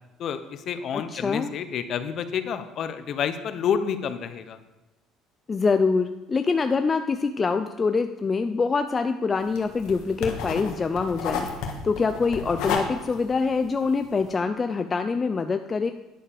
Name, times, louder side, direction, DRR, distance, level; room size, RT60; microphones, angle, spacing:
voice 1, 0.2-4.6, left 7 dB, 50° left, 11 dB, 0.7 m, -29 dB
voice 2, 0.9-1.5 5.5-11.5 11.8-15.9, left 4 dB, 25° left, 8 dB, 0.4 m, -25 dB
sound 1, 9.4-14.3, left 5 dB, 75° left, 1.5 m, -32 dB
10.0 x 6.6 x 5.1 m, 1.0 s
cardioid pair, 130°, 0 cm